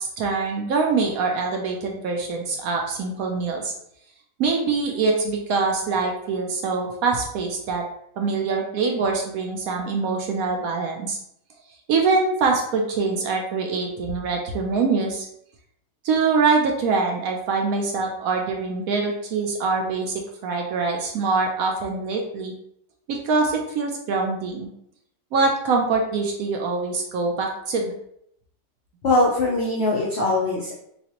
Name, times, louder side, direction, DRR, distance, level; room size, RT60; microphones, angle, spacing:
voice 1, 0.0-3.7 4.4-7.8 8.2-11.2 11.9-15.3 16.0-22.5 23.1-24.7 25.3-27.9, right 4 dB, 70° right, 1 dB, 0.9 m, -24 dB
voice 2, 29.0-30.7, left 2 dB, 65° left, -3 dB, 0.6 m, -21 dB
4.1 x 2.3 x 2.9 m, 0.73 s
omnidirectional pair, 1.8 m